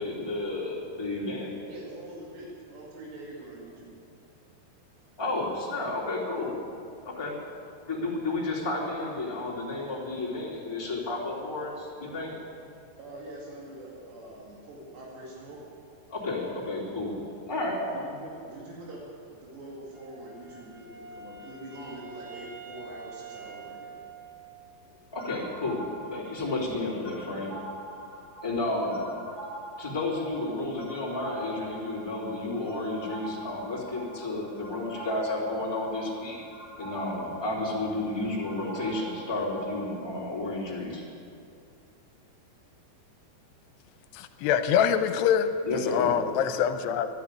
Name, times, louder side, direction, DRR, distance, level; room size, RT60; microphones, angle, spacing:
voice 1, 0.0-1.5 5.2-6.5 7.0-7.4 7.9-12.3 16.1-17.2 17.5-17.8 25.1-27.5 28.4-29.0 29.8-36.4 36.8-41.0 45.6-46.1, left 2 dB, 5° left, -6 dB, 2.5 m, -31 dB
voice 2, 1.7-4.0 6.3-6.4 13.0-15.6 17.9-19.1 19.3-23.9 24.8-25.0 27.1-27.3, right 1 dB, 85° right, -4 dB, 4.3 m, -44 dB
Wind instrument woodwind instrument, 19.9-24.7, right 4 dB, 30° right, 2.8 m, -46 dB
sound 1, 25.2-40.0, right 1 dB, 40° left, 1.4 m, -44 dB
voice 3, 44.1-45.5 45.8-47.1, left 8 dB, 85° left, 9 dB, 2.7 m, -24 dB
12.5 x 12.0 x 8.4 m, 2.5 s
omnidirectional pair, 4.8 m